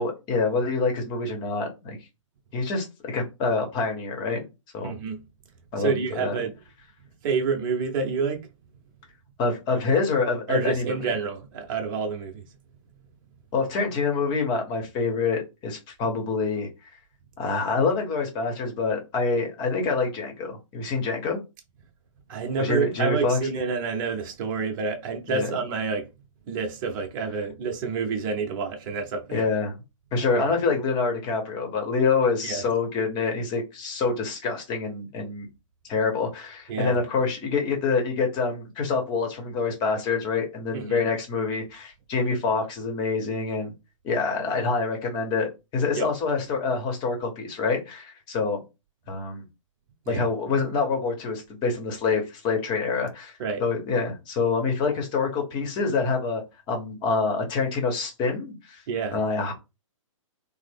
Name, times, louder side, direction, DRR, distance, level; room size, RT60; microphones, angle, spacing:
voice 1, 0.0-2.0 2.5-4.4 4.7-4.9 5.7-6.4 9.4-11.1 13.5-16.7 17.4-21.4 22.6-23.4 25.3-25.5 29.3-29.8 30.1-35.5 35.9-43.7 44.0-48.6 49.1-49.4 50.1-53.3 53.6-56.4 56.7-58.8 59.1-59.5, left 4 dB, 25° left, 1.0 m, -26 dB
voice 2, 4.8-5.2 5.8-6.5 7.2-8.5 10.5-12.4 22.3-26.1 26.5-29.4 30.4-30.5 32.4-32.6 36.7-37.0 40.7-41.0 46.0-46.1 50.1-50.3 53.4-53.6 58.9-59.2, right 4 dB, 40° right, 0.7 m, -28 dB
3.2 x 2.0 x 3.4 m
hypercardioid pair, 140°, 17 cm